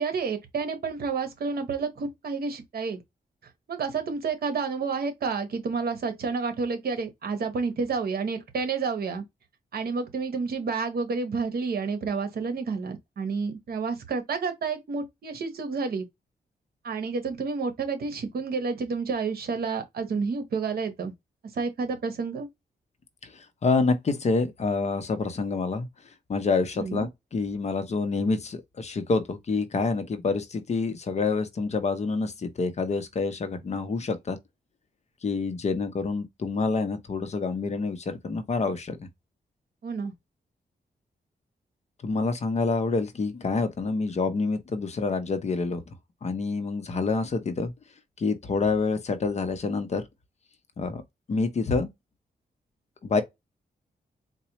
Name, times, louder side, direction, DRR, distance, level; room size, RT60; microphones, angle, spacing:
voice 1, 0.0-3.0 3.7-9.2 9.7-16.1 16.8-21.1 21.5-22.5 26.8-27.1 39.8-40.1, right 4 dB, 70° right, 1.0 m, -30 dB
voice 2, 23.2-25.9 26.3-34.4 35.2-39.1 42.0-45.8 46.2-47.7 48.2-50.0 50.8-51.0 51.3-51.9 53.0-53.2, left 4 dB, 45° left, 0.7 m, -27 dB
4.1 x 2.2 x 2.9 m
wide cardioid pair, 135°, 16 cm